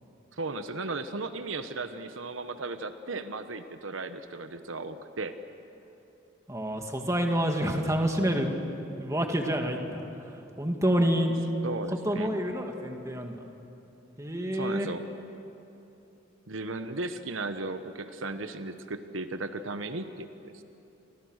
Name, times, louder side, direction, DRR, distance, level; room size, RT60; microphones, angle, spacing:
voice 1, 0.3-5.3 11.6-12.3 14.5-15.0 16.5-20.6, right 3 dB, 80° right, 9 dB, 1.1 m, -36 dB
voice 2, 6.5-8.5 9.0-10.0 10.6-11.4 12.0-13.3 14.2-14.9, equal, 15° right, 3 dB, 2.1 m, -27 dB
29.0 x 25.5 x 6.5 m, 2.9 s
head